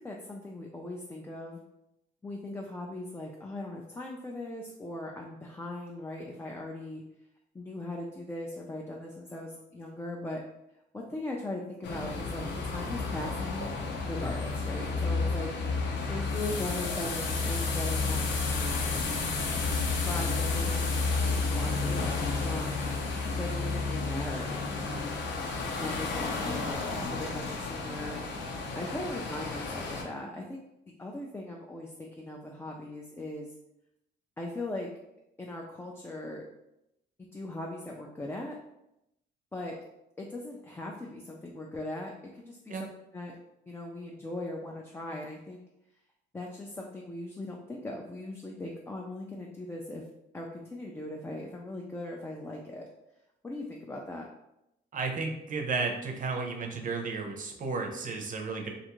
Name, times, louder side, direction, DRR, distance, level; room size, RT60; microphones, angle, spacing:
voice 1, 0.0-1.6 2.2-7.0 7.5-10.4 10.9-13.8 14.1-19.4 19.9-22.8 23.2-25.3 25.8-28.2 28.8-30.6 31.0-33.5 34.4-34.9 35.4-36.5 37.2-38.6 39.5-39.8 40.2-43.4 43.7-45.6 46.3-50.1 50.3-52.9 53.4-54.3, left 1 dB, 10° left, -1 dB, 0.3 m, -39 dB
sound 1, 11.8-30.0, left 3 dB, 65° left, 0.6 m, -31 dB
voice 2, 54.9-58.7, right 4 dB, 45° right, 2 dB, 0.6 m, -33 dB
2.5 x 2.4 x 2.9 m, 0.86 s
cardioid pair, 90°, 20 cm